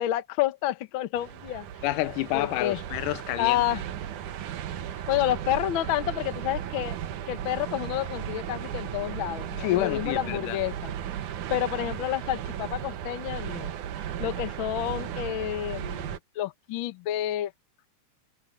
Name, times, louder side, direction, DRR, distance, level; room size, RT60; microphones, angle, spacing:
voice 1, 0.0-1.7 2.3-2.8 3.4-3.8 5.1-7.0 7.3-10.9 11.5-13.7 14.2-17.5, left 13 dB, 65° left, 1.2 m, -29 dB
sound 1, 1.1-16.2, right 10 dB, 75° right, 2.7 m, -35 dB
voice 2, 1.8-3.6 9.6-10.6, left 17 dB, 85° left, 2.2 m, -28 dB
omnidirectional pair, 3.6 m